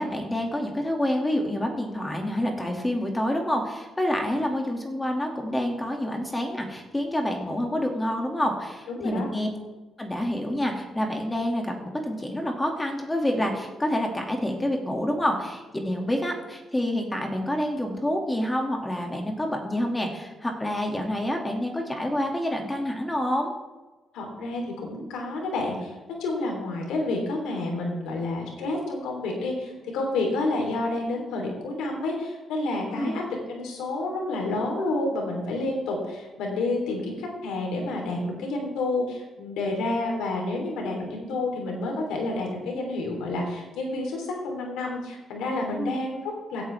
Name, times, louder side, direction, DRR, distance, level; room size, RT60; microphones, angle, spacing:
voice 1, 0.0-9.5 10.0-23.5 32.9-33.2 45.8-45.9, left 1 dB, 15° left, 2 dB, 2.2 m, -28 dB
voice 2, 8.9-9.3 24.1-33.2 33.5-46.6, left 2 dB, 90° left, 0 dB, 3.4 m, -29 dB
16.5 x 9.0 x 3.5 m, 1.2 s
cardioid pair, 90°, 0 cm